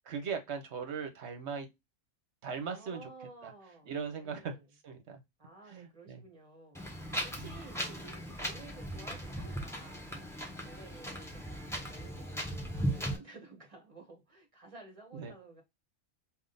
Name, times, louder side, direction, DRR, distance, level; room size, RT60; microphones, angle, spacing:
voice 1, 0.0-1.7 2.4-3.1 3.4-3.5 3.9-4.6 4.8-5.2 5.7-6.2 7.4-7.5 15.1-15.3, right 6 dB, 60° right, 1.1 m, -39 dB
voice 2, 2.7-4.6 5.4-15.6, right 3 dB, 25° right, 1.3 m, -53 dB
Wind, 6.7-13.2, equal, ahead, 0.9 m, -38 dB
3.6 x 2.5 x 3.8 m
omnidirectional pair, 1.3 m